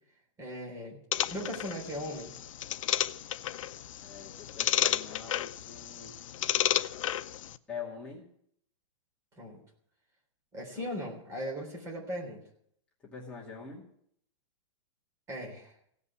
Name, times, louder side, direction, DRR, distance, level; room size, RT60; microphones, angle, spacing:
voice 1, 0.4-1.0 1.3-2.3 9.4-9.6 10.5-12.4 15.3-15.7, equal, 15° right, 0 dB, 3.6 m, -38 dB
sound 1, 1.1-7.6, left 11 dB, 85° left, 0.6 m, -32 dB
voice 2, 4.0-6.2 7.7-8.2 10.7-11.0 13.0-13.8, left 6 dB, 5° left, -6 dB, 2.4 m, -44 dB
16.5 x 5.5 x 9.7 m, 0.70 s
supercardioid pair, 165°, 16 cm